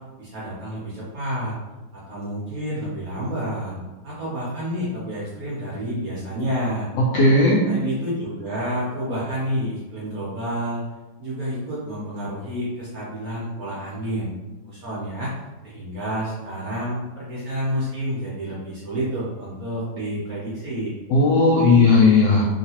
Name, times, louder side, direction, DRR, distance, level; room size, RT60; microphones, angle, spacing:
voice 1, 0.2-1.5 1.9-3.8 4.0-6.9 7.6-10.8 11.2-14.3 14.6-15.3 15.6-20.9, equal, 60° right, -7 dB, 0.9 m, -29 dB
voice 2, 7.0-7.6 21.1-22.4, left 3 dB, 80° left, -4 dB, 0.9 m, -16 dB
3.0 x 2.8 x 2.8 m, 1.1 s
omnidirectional pair, 2.3 m